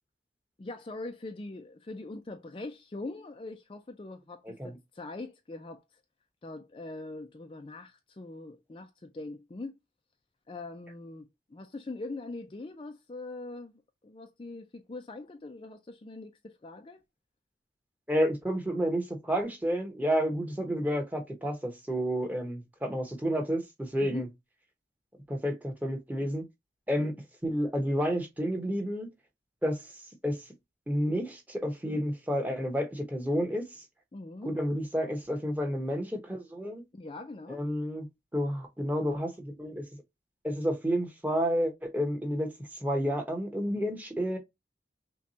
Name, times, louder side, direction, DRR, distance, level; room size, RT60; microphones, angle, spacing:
voice 1, 0.6-5.8 6.4-9.8 10.5-13.7 14.0-17.0 24.0-24.2 34.1-34.6 36.9-37.7, left 2 dB, 30° left, 0.4 m, -42 dB
voice 2, 4.4-4.8 18.1-24.3 25.3-26.4 26.9-27.1 27.4-29.1 29.6-29.8 30.2-30.4 30.9-33.7 34.4-36.8 37.5-38.1 38.3-39.8 40.4-42.5 42.8-44.4, equal, 10° right, 1.0 m, -30 dB
5.9 x 2.3 x 2.7 m
head